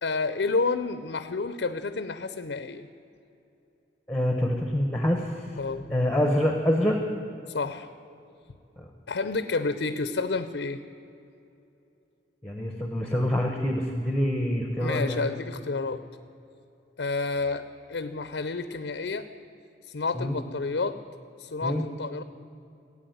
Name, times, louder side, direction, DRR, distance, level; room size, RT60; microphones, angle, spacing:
voice 1, 0.0-2.9 5.6-6.1 7.5-7.9 9.1-10.8 14.8-16.0 17.0-19.3 19.9-21.0 21.4-22.2, left 3 dB, 75° left, 11 dB, 0.6 m, -30 dB
voice 2, 4.1-5.5 5.9-7.0 8.8-8.9 12.4-15.2 20.1-20.4 21.6-21.8, left 1 dB, 5° left, 3 dB, 1.0 m, -26 dB
16.0 x 8.5 x 9.3 m, 2.8 s
head